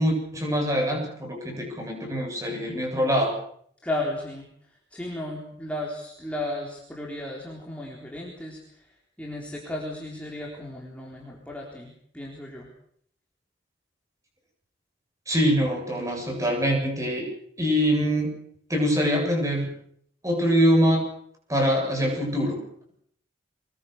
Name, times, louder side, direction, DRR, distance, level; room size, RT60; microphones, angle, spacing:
voice 1, 0.0-3.4 15.3-17.3 17.6-18.3 18.7-19.7 20.2-21.1 21.5-22.6, equal, 15° right, 2 dB, 7.9 m, -24 dB
voice 2, 3.8-4.5 4.9-12.7, left 1 dB, 5° left, -3 dB, 4.0 m, -34 dB
24.0 x 21.5 x 6.8 m, 0.65 s
head